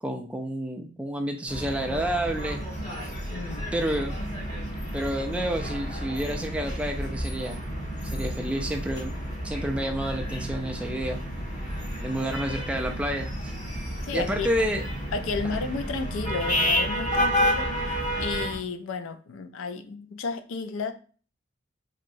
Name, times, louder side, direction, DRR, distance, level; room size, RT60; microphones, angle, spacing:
voice 1, 0.0-2.6 3.7-4.2 4.9-7.6 8.1-9.1 9.4-11.2 12.0-13.5 14.1-14.8 15.4-15.6, right 1 dB, 5° right, 2 dB, 0.3 m, -29 dB
sound 1, 1.5-18.6, equal, 35° left, 1.5 m, -30 dB
voice 2, 3.3-3.7 14.0-14.5 15.1-20.9, left 4 dB, 80° left, 9 dB, 0.4 m, -33 dB
3.0 x 2.8 x 2.6 m, 0.40 s
head